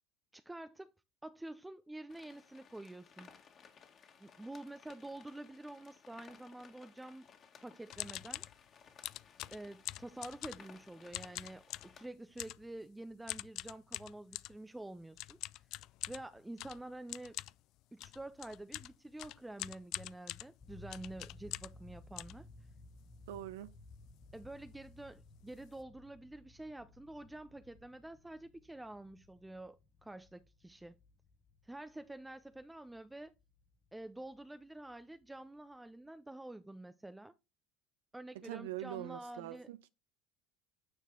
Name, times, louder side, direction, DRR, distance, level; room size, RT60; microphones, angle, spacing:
voice 1, 0.3-0.9 1.2-3.3 4.2-7.3 7.6-8.4 9.5-15.4 16.1-17.4 17.9-22.5 24.3-31.0 31.6-33.3 33.9-37.3 38.1-39.9, right 1 dB, 10° right, 0.5 m, -48 dB
sound 1, 2.1-12.1, left 6 dB, 45° left, 1.8 m, -60 dB
sound 2, 7.9-8.6 9.0-10.8 11.1-12.0 12.4-12.7 13.3-14.6 15.2-21.8 22.2-23.0 23.5-23.6 23.8-24.1 24.3-24.5 25.1-25.2 25.5-25.7, left 16 dB, 60° left, 0.3 m, -44 dB
sound 3, 20.6-35.5, left 2 dB, 25° left, 1.4 m, -59 dB
voice 2, 23.3-23.7 38.4-39.9, right 14 dB, 80° right, 0.4 m, -43 dB
9.3 x 4.6 x 3.7 m
hypercardioid pair, 85°, 0 cm